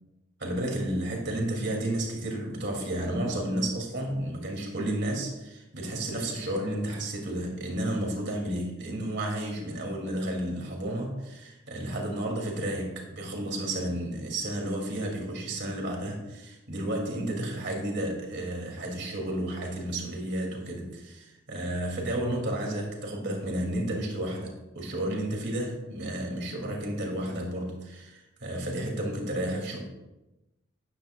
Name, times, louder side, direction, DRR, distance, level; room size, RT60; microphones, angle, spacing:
voice 1, 0.4-29.8, right 1 dB, 55° right, 0 dB, 2.4 m, -32 dB
13.0 x 10.5 x 2.3 m, 0.98 s
head